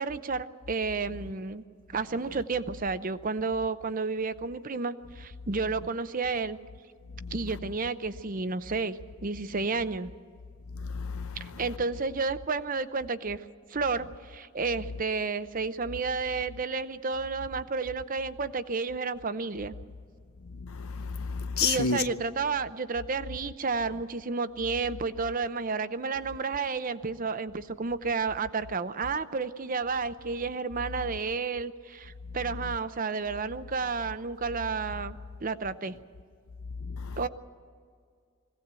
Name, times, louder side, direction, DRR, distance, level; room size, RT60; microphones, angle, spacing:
voice 1, 0.0-1.6 1.9-6.6 7.3-10.1 11.4-13.4 13.7-19.7 21.6-35.9 37.2-37.3, right 4 dB, 40° right, 0.7 m, -31 dB
voice 2, 10.7-11.7 20.4-22.1 36.8-37.2, left 5 dB, 90° left, 0.8 m, -32 dB
22.0 x 17.0 x 8.2 m
head